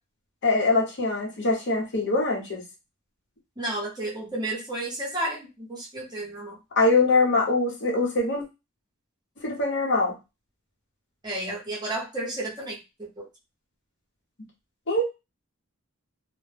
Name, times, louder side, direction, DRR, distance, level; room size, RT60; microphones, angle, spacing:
voice 1, 0.4-2.6 6.8-8.4 9.4-10.1 14.9-15.0, left 3 dB, 55° left, -1 dB, 0.8 m, -23 dB
voice 2, 3.6-6.6 11.2-13.3, right 1 dB, 20° right, -4 dB, 0.8 m, -32 dB
2.1 x 2.1 x 3.2 m, 0.26 s
head